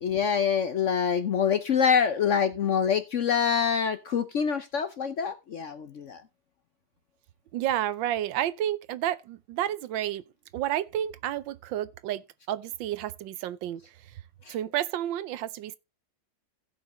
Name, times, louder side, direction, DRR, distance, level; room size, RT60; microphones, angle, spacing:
voice 1, 0.0-6.2 14.4-14.5, left 7 dB, 60° left, 0.8 m, -25 dB
voice 2, 7.5-10.2 10.5-12.2 12.5-13.8 14.5-15.8, right 12 dB, 85° right, 1.4 m, -30 dB
15.5 x 5.5 x 4.0 m
omnidirectional pair, 2.0 m